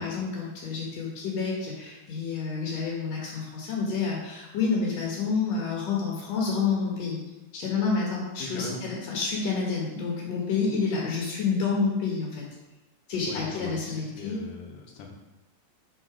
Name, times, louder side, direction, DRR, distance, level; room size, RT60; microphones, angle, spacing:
voice 1, 0.0-7.2 7.5-12.5 13.1-14.4, left 5 dB, 65° left, -3 dB, 2.3 m, -29 dB
voice 2, 8.4-8.8 13.2-15.1, left 4 dB, 85° left, 1 dB, 2.6 m, -40 dB
6.4 x 5.3 x 4.8 m, 1.1 s
omnidirectional pair, 3.6 m